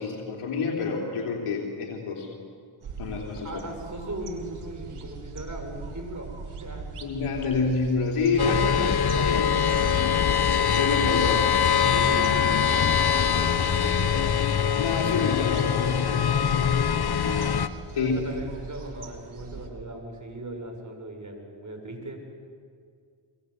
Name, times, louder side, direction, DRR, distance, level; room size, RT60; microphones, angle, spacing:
voice 1, 0.0-2.3 3.0-3.6 7.0-9.5 10.7-11.4 12.0-12.2 14.8-16.3 17.9-18.2, left 4 dB, 90° left, 0 dB, 3.4 m, -28 dB
sound 1, 2.8-19.7, right 4 dB, 75° right, 2.9 m, -42 dB
voice 2, 3.4-6.9 9.7-10.2 11.1-11.4 11.8-14.4 17.1-17.7 17.9-22.2, right 1 dB, 35° right, 4 dB, 6.9 m, -38 dB
sound 2, 8.4-17.7, left 7 dB, 50° left, 1.3 m, -23 dB
26.5 x 24.5 x 8.3 m, 2.2 s
cardioid pair, 50°, 50 cm